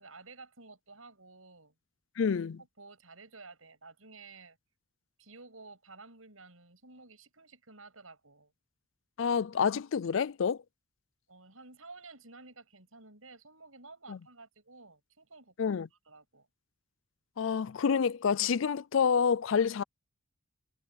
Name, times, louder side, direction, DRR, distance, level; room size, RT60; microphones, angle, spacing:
voice 1, 0.0-1.7 2.6-4.6 5.2-8.5 11.3-16.5, right 3 dB, 80° right, 7.6 m, -53 dB
voice 2, 2.2-2.6 9.2-10.6 14.1-14.2 15.6-15.9 17.4-19.8, left 6 dB, 70° left, 0.4 m, -28 dB
head